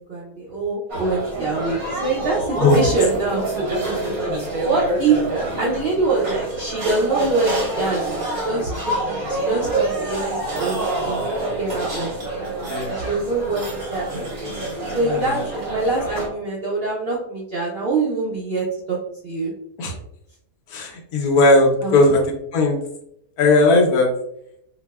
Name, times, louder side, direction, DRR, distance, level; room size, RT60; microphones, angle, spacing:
voice 1, 0.1-3.5 4.3-8.7 9.0-11.2 11.6-12.2 12.9-14.1 14.9-19.0 19.2-19.5 21.8-22.1, right 3 dB, 85° right, -4 dB, 0.5 m, -24 dB
sound 1, 0.9-16.3, right 2 dB, 50° right, 0.7 m, -26 dB
voice 2, 15.1-15.4 19.8-19.9 20.7-22.2 22.5-22.8 23.4-24.1, left 2 dB, 70° left, 1 dB, 1.1 m, -17 dB
4.2 x 2.0 x 2.2 m, 0.75 s
omnidirectional pair, 1.8 m